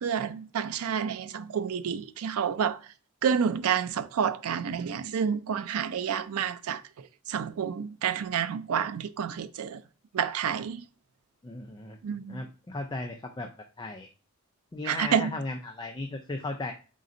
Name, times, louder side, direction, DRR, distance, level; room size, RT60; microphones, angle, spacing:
voice 1, 0.0-2.8 3.2-6.8 7.3-9.8 10.1-10.8 12.0-12.4 14.8-15.3, right 7 dB, 90° right, 0.4 m, -29 dB
voice 2, 11.4-12.0 12.3-13.5 13.8-14.1 14.7-16.7, left 2 dB, 20° left, 0.4 m, -36 dB
4.1 x 3.8 x 2.5 m
head